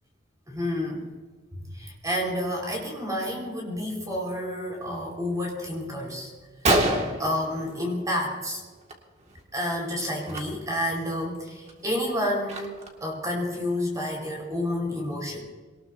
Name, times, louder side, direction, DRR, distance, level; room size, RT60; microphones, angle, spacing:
voice 1, 0.5-1.1 1.5-6.3 6.7-8.6 9.5-15.4, left 1 dB, 20° right, 0 dB, 4.6 m, -30 dB
Gunshot gunfire, 6.4-6.5 6.6-8.3 8.6-8.9 9.2-9.4 10.2-10.4 10.9-11.0 11.5-13.1, right 1 dB, 35° right, 2.0 m, -27 dB
22.0 x 19.5 x 2.7 m, 1.4 s
head